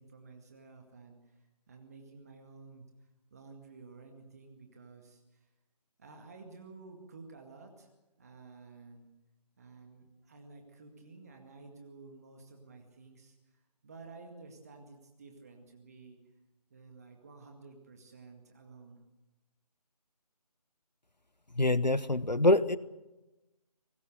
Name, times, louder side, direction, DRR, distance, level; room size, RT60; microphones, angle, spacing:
voice 1, 0.0-5.5 6.0-9.1 9.6-16.2 16.7-19.0, right 3 dB, 25° right, 3 dB, 2.1 m, -53 dB
voice 2, 21.5-22.8, left 1 dB, 90° left, 16 dB, 1.2 m, -25 dB
24.5 x 20.0 x 6.7 m, 1.0 s
figure-of-eight pair, 160°, 21 cm